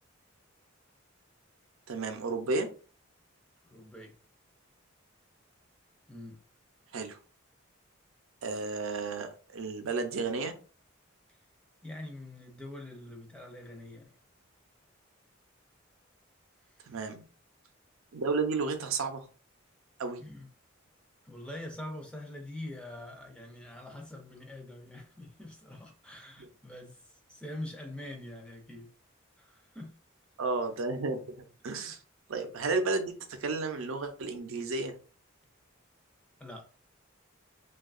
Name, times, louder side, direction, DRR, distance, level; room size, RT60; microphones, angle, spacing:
voice 1, 1.9-2.7 6.9-7.2 8.4-10.6 16.9-17.2 18.1-19.3 20.0-20.2 26.4-26.5 30.4-32.0 32.3-34.9, right 3 dB, 85° right, 0.5 m, -32 dB
voice 2, 3.6-4.1 6.1-6.4 11.8-14.1 20.2-20.5 21.2-27.0 27.3-28.9 29.4-29.9 36.4-36.7, left 1 dB, 5° left, 0.4 m, -44 dB
2.7 x 2.3 x 2.4 m
head